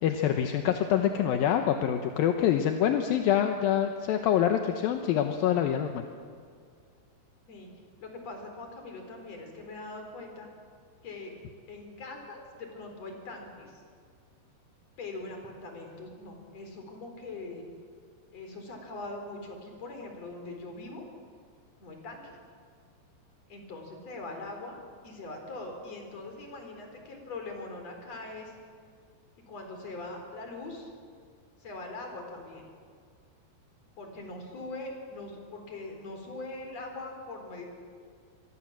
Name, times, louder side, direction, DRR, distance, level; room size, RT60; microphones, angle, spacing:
voice 1, 0.0-6.1, left 10 dB, 70° left, 5 dB, 2.4 m, -26 dB
voice 2, 8.0-10.5 11.0-11.3 11.7-13.8 15.0-17.6 18.3-21.0 21.8-22.4 23.5-24.8 25.0-28.5 29.5-30.9 31.6-32.7 34.0-37.6, left 2 dB, 35° left, 3 dB, 5.0 m, -42 dB
26.0 x 23.5 x 7.5 m, 2.1 s
omnidirectional pair, 5.1 m